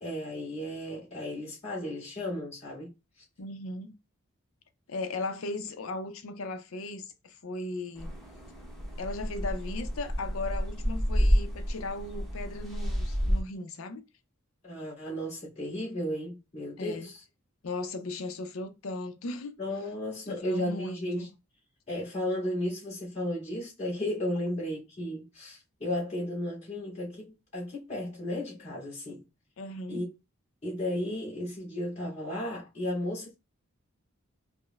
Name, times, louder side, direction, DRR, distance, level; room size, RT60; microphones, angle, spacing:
voice 1, 0.0-2.9 11.2-11.3 14.6-17.2 19.6-21.3 21.9-29.2 29.9-30.1 30.6-33.4, left 1 dB, 30° left, 1.9 m, -34 dB
voice 2, 3.4-3.9 4.9-8.1 9.0-14.0 16.8-17.1 17.6-19.5 20.3-21.3 29.6-30.0, left 2 dB, 75° left, 0.5 m, -37 dB
sound 1, 8.0-13.4, equal, ahead, 0.8 m, -30 dB
5.1 x 2.0 x 2.3 m
head